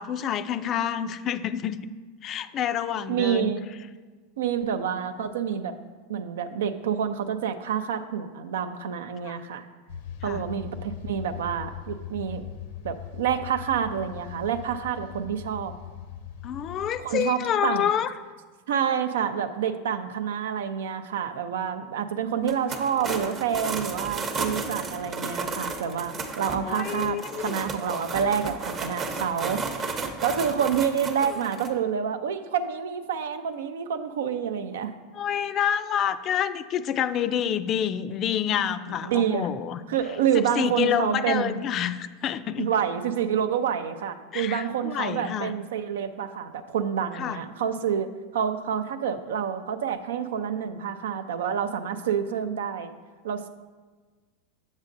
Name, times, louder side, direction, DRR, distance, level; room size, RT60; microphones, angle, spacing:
voice 1, 0.0-1.8 2.2-3.5 9.2-9.4 10.2-10.4 16.4-18.1 26.6-27.6 35.1-39.8 40.3-42.7 44.3-45.5 47.2-47.4, left 9 dB, 40° left, 12 dB, 0.3 m, -28 dB
voice 2, 3.1-3.6 4.4-5.8 6.1-9.7 10.2-12.4 12.8-15.7 17.0-17.9 18.7-29.6 30.2-34.9 39.0-39.5 39.9-41.6 42.6-52.9 53.2-53.5, right 8 dB, 85° right, 10 dB, 0.4 m, -28 dB
sound 1, 9.9-17.0, left 10 dB, 80° left, 0.7 m, -40 dB
sound 2, 22.4-31.7, right 4 dB, 30° right, 0.7 m, -33 dB
7.3 x 7.1 x 2.6 m, 1.4 s
supercardioid pair, 115°, 0 cm